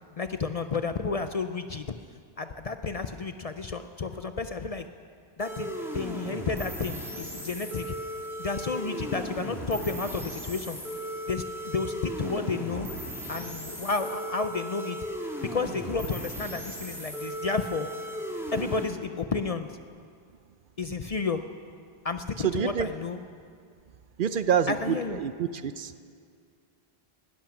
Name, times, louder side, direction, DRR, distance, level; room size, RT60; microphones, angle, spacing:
voice 1, 0.2-1.9 2.4-4.9 5.4-7.9 8.4-10.8 11.3-12.9 13.3-15.0 15.4-17.9 18.5-19.8 20.8-21.4 22.0-23.2 24.7-25.2, left 4 dB, 45° left, 9 dB, 0.5 m, -31 dB
sound 1, 5.4-18.9, equal, ahead, 1.8 m, -37 dB
voice 2, 22.4-22.9 24.2-26.0, right 8 dB, 60° right, 12 dB, 0.7 m, -27 dB
19.0 x 12.0 x 5.9 m, 2.2 s
omnidirectional pair, 1.1 m